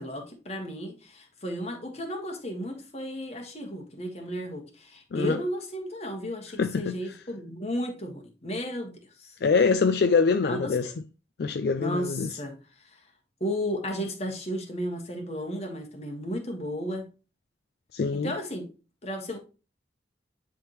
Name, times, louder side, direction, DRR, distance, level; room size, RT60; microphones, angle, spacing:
voice 1, 0.0-9.4 10.4-10.9 11.7-12.6 12.8-13.0 13.4-17.1 18.1-18.7 19.0-19.4, equal, 35° left, 1.6 m, -34 dB
voice 2, 6.6-7.0 9.4-10.9 11.4-12.3 17.9-18.3, left 5 dB, 60° left, 0.4 m, -24 dB
10.5 x 3.6 x 3.0 m
head